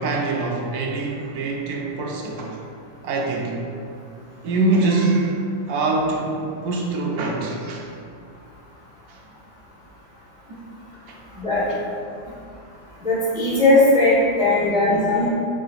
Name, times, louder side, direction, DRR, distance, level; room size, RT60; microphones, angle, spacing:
voice 1, 0.0-2.6 3.0-3.6 4.4-5.4 5.7-7.9 11.7-11.8 14.7-15.1, right 3 dB, 70° right, 0 dB, 1.0 m, -24 dB
voice 2, 13.0-15.3, left 2 dB, 5° right, -10 dB, 1.0 m, -18 dB
4.9 x 4.3 x 2.4 m, 2.4 s
omnidirectional pair, 1.8 m